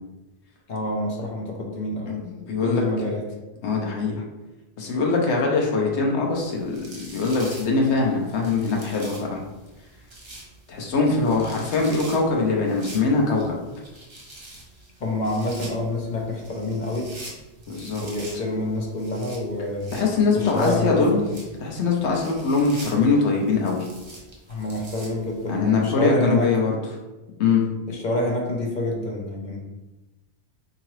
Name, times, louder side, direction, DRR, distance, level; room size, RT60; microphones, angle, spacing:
voice 1, 0.7-2.2 2.6-3.2 15.0-17.1 18.0-19.9 20.3-21.2 24.5-26.5 27.9-29.6, left 1 dB, 45° left, -1 dB, 0.7 m, -27 dB
voice 2, 2.1-2.8 3.6-4.2 4.8-9.4 10.7-13.6 17.7-18.0 19.9-21.3 21.6-23.9 25.5-26.8 27.4-27.6, left 4 dB, 75° left, 0 dB, 1.0 m, -22 dB
sound 1, 6.4-25.6, right 2 dB, 30° right, 0.6 m, -45 dB
3.7 x 2.9 x 3.1 m, 1.1 s
omnidirectional pair, 1.2 m